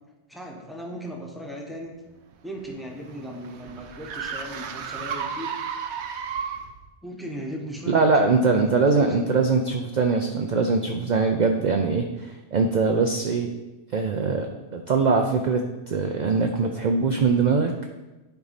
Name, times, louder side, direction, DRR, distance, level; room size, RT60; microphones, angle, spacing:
voice 1, 0.3-1.9 2.4-5.5 7.0-9.1, equal, ahead, -1 dB, 1.1 m, -37 dB
sound 1, 2.3-6.9, right 6 dB, 75° right, 0.9 m, -33 dB
voice 2, 7.9-13.5 13.9-17.7, right 4 dB, 50° right, 3 dB, 0.6 m, -22 dB
10.5 x 4.7 x 4.1 m, 1.1 s
omnidirectional pair, 1.2 m